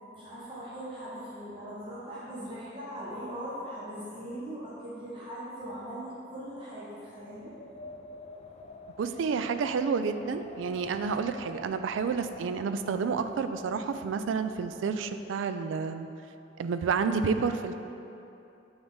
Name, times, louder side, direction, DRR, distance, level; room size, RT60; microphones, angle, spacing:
voice 1, 0.1-7.5, equal, 30° right, -9 dB, 0.9 m, -40 dB
Wind, 7.0-15.5, left 2 dB, 35° left, 0.4 m, -49 dB
voice 2, 9.0-16.1 16.6-17.9, right 5 dB, 85° right, 9 dB, 0.3 m, -30 dB
7.7 x 4.0 x 3.4 m, 2.8 s
head